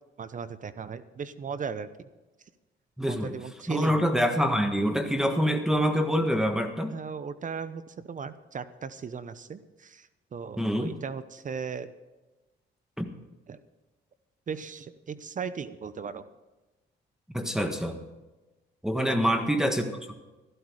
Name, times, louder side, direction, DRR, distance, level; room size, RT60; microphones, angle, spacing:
voice 1, 0.2-2.1 3.0-4.0 6.9-11.9 13.5-13.6 14.5-16.2 19.0-19.2, right 6 dB, 40° right, 14 dB, 0.8 m, -37 dB
voice 2, 3.0-3.3 3.7-6.9 10.6-10.9 13.0-13.1 17.3-18.0 18.8-20.1, equal, 5° right, 4 dB, 1.4 m, -26 dB
13.5 x 12.5 x 4.9 m, 1.1 s
cardioid pair, 90°, 20 cm